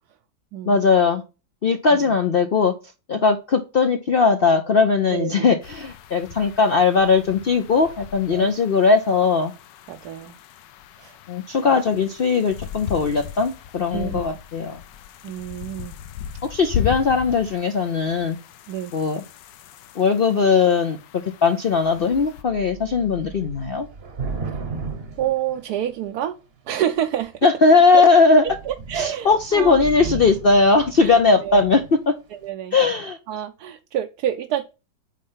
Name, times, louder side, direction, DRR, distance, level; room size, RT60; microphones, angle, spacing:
voice 1, 0.7-1.2 1.6-2.7 3.1-9.5 11.3-14.8 16.5-18.4 18.9-19.2 20.0-23.9 27.4-28.4 28.9-32.1 32.7-33.2, left 4 dB, 65° left, 0.5 m, -19 dB
voice 2, 5.1-5.5 8.3-8.5 9.9-10.3 11.0-11.2 13.9-14.2 15.2-16.0 18.7-18.9 24.4-24.6 25.2-26.4 26.7-27.3 27.9-28.0 28.4-30.3 31.0-31.6 32.3-32.8 33.3-34.6, right 11 dB, 70° right, 1.1 m, -28 dB
sound 1, 5.6-22.4, left 10 dB, 85° left, 1.3 m, -37 dB
Thunder / Rain, 21.7-21.9 22.1-26.2 27.0-27.4 27.8-28.0 28.3-32.0, right 4 dB, 40° right, 1.0 m, -35 dB
9.0 x 3.3 x 5.6 m
omnidirectional pair, 1.9 m